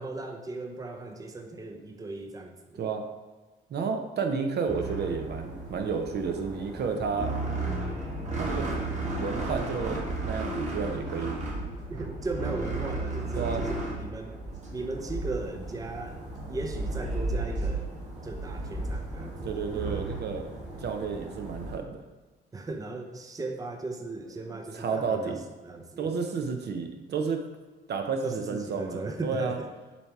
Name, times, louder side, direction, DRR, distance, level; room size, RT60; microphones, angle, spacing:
voice 1, 0.0-2.8 11.9-14.4 14.7-17.9 18.2-19.5 22.5-25.4 25.6-26.1 28.2-29.7, right 2 dB, 15° right, 4 dB, 0.6 m, -37 dB
voice 2, 3.7-7.3 8.3-8.7 9.2-11.4 13.4-13.6 19.4-20.5 20.8-22.0 24.7-25.4 26.0-27.4 27.9-29.6, right 5 dB, 55° right, 5 dB, 0.7 m, -31 dB
sound 1, 4.7-21.8, right 2 dB, 35° right, 1.5 m, -34 dB
7.0 x 2.9 x 4.6 m, 1.2 s
cardioid pair, 90°, 20 cm